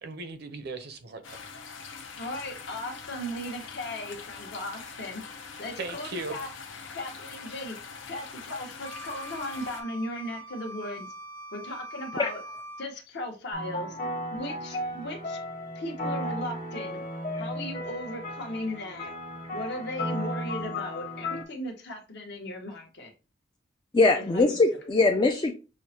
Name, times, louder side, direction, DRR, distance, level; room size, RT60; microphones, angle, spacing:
voice 1, 0.0-1.4 5.8-6.4, right 3 dB, 60° right, 0.6 m, -37 dB
sound 1, 1.2-9.8, left 5 dB, 85° left, 0.7 m, -43 dB
voice 2, 2.2-5.2 5.6-6.5 6.9-7.8 8.1-11.1 11.5-12.4 12.8-13.9 14.3-15.4 15.7-17.0 17.4-19.1 19.5-23.1 24.1-24.6, left 1 dB, 65° left, 1.0 m, -37 dB
Wind instrument woodwind instrument, 8.8-12.9, right 1 dB, 85° right, 0.9 m, -43 dB
sound 2, 13.5-21.4, left 1 dB, 45° left, 1.3 m, -34 dB
voice 3, 23.9-25.5, left 3 dB, 25° left, 0.3 m, -22 dB
6.2 x 2.1 x 2.8 m
head